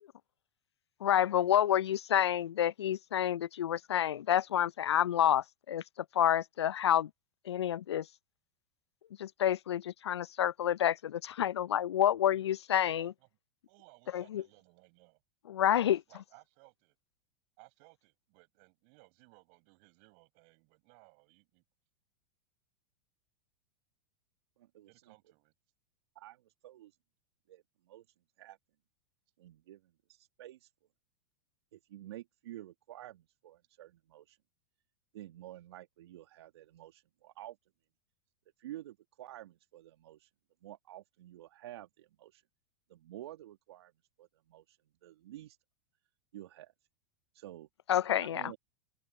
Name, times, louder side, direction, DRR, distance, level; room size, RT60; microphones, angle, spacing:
voice 1, 1.0-5.8 6.1-7.1 7.5-8.1 9.2-13.1 14.1-14.4 15.5-16.0 47.9-48.5, left 10 dB, 75° left, 0.7 m, -29 dB
voice 2, 12.8-13.3 13.7-15.2 15.7-17.0 17.6-21.6 24.8-25.5, right 40 dB or more, 55° right, 6.7 m, -62 dB
voice 3, 24.6-25.1 26.2-27.0 27.5-28.0 28.4-28.6 29.4-30.7 31.7-34.4 35.1-37.6 38.6-40.3 40.6-42.4 42.9-43.9 44.2-45.6 46.3-46.7 47.3-47.7 48.2-48.6, right 14 dB, 70° right, 1.9 m, -50 dB
open air
hypercardioid pair, 95°, 14 cm